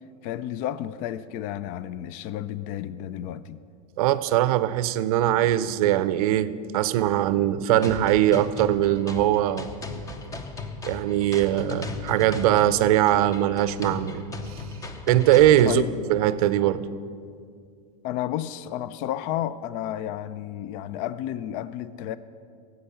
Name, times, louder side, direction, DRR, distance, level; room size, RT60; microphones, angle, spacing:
voice 1, 0.2-3.6 15.6-16.0 18.0-22.2, left 11 dB, 45° left, 16 dB, 0.4 m, -31 dB
voice 2, 4.0-9.7 10.8-14.6 15.1-15.8 16.1-16.8, right 13 dB, 65° right, 15 dB, 0.5 m, -21 dB
sound 1, 7.8-15.8, left 4 dB, 15° left, 0.8 m, -37 dB
10.0 x 7.9 x 6.8 m, 2.2 s
supercardioid pair, 140°, 20 cm